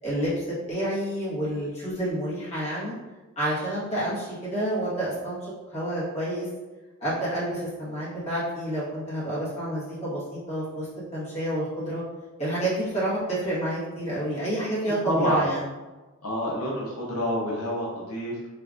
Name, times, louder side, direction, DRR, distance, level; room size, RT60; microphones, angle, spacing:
voice 1, 0.0-2.9 3.3-5.4 5.7-6.5 7.0-10.9 11.1-12.0 12.4-15.7, right 1 dB, 30° left, -9 dB, 1.3 m, -29 dB
voice 2, 15.0-15.4 16.2-18.5, equal, 85° left, -4 dB, 0.8 m, -28 dB
3.5 x 3.2 x 2.5 m, 1.2 s
head